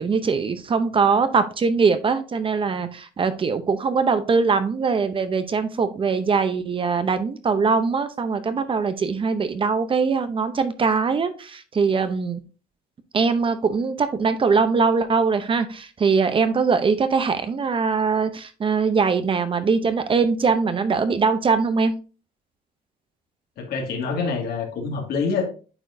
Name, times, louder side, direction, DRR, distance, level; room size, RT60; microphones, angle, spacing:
voice 1, 0.0-12.4 13.1-21.9, right 5 dB, 30° right, 11 dB, 0.7 m, -22 dB
voice 2, 23.6-25.5, left 4 dB, 70° left, 2 dB, 2.1 m, -26 dB
8.7 x 4.5 x 2.6 m, 0.36 s
cardioid pair, 110°, 17 cm